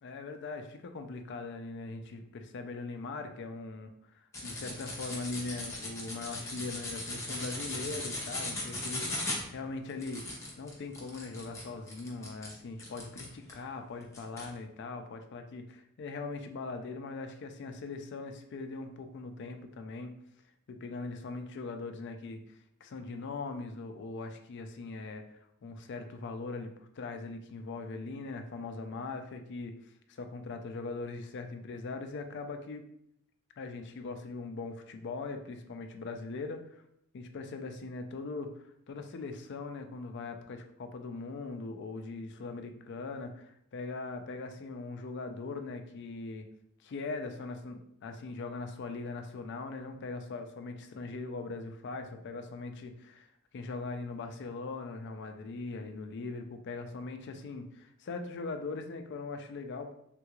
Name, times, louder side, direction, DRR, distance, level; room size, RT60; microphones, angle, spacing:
voice 1, 0.0-10.2 10.6-20.1 20.7-32.9 33.6-36.8 37.1-46.5 46.8-59.9, left 3 dB, 55° left, 6 dB, 0.4 m, -41 dB
sound 1, 4.3-13.6 14.1-14.5, left 2 dB, 15° left, 0.8 m, -38 dB
3.6 x 2.3 x 3.0 m, 0.73 s
head